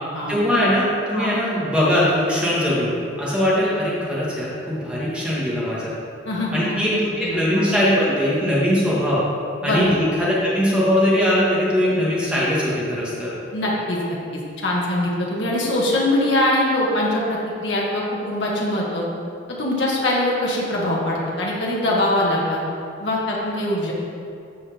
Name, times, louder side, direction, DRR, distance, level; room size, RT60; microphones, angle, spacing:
voice 1, 0.3-2.9 3.2-5.9 6.5-9.2 9.6-13.3, equal, 5° right, -8 dB, 1.5 m, -20 dB
voice 2, 6.2-6.8 7.2-7.4 9.6-10.1 13.5-19.0 19.6-22.6 23.0-23.9, left 1 dB, 65° left, -4 dB, 1.5 m, -22 dB
13.5 x 4.6 x 3.4 m, 2.6 s
head